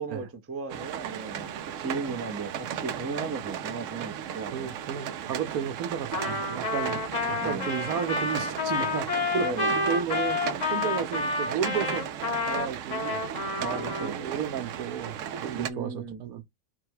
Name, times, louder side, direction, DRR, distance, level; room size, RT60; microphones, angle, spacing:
voice 1, 0.0-4.7 7.4-7.7 9.4-9.7 13.6-14.2 15.5-16.2, right 4 dB, 20° right, 0.4 m, -36 dB
sound 1, 0.7-15.7, right 9 dB, 70° right, 0.9 m, -36 dB
voice 2, 4.5-12.0 12.5-13.2 14.0-16.4, right 8 dB, 85° right, 1.2 m, -33 dB
Trumpet, 6.1-14.1, left 3 dB, 35° left, 0.9 m, -29 dB
4.0 x 2.3 x 4.6 m
omnidirectional pair, 1.5 m